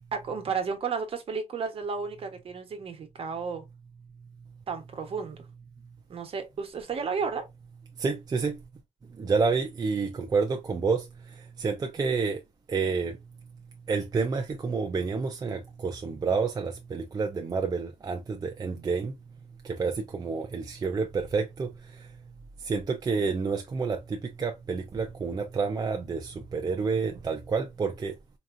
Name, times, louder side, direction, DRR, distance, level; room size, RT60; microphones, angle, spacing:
voice 1, 0.1-3.7 4.7-5.4 6.1-7.5, right 5 dB, 50° right, 1.1 m, -32 dB
voice 2, 8.0-8.6 9.2-11.0 11.6-12.4 12.7-13.2 13.9-19.1 19.7-21.7 22.7-28.1, right 4 dB, 30° right, 0.5 m, -29 dB
4.6 x 2.9 x 2.5 m
wide cardioid pair, 155°, 12 cm